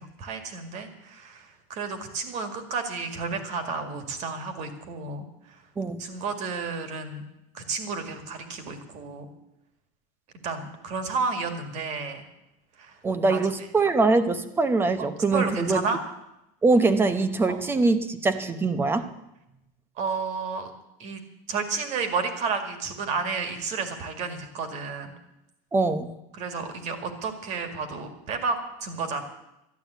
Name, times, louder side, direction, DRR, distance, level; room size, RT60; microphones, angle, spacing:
voice 1, 0.0-5.3 6.0-7.2 7.5-9.3 10.4-12.2 12.8-13.0 13.3-13.4 15.3-16.0 17.5-17.6 20.0-20.7 21.0-21.2 21.5-25.1 26.3-29.2, right 4 dB, 40° right, 7 dB, 2.1 m, -31 dB
voice 2, 13.0-15.8 16.6-19.1 25.7-26.1, right 3 dB, 10° right, 11 dB, 0.8 m, -23 dB
13.0 x 11.0 x 8.2 m, 0.88 s
cardioid pair, 165°, 18 cm